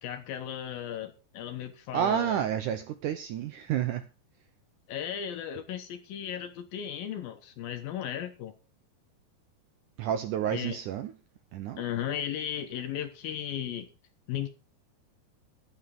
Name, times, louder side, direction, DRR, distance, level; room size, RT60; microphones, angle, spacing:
voice 1, 0.0-2.4 4.9-8.5 10.5-10.8 11.8-13.9 14.3-14.5, left 10 dB, 70° left, 2.6 m, -35 dB
voice 2, 1.9-4.1 10.0-11.2 11.5-11.8, right 9 dB, 80° right, 1.8 m, -30 dB
14.5 x 11.0 x 3.8 m
omnidirectional pair, 4.7 m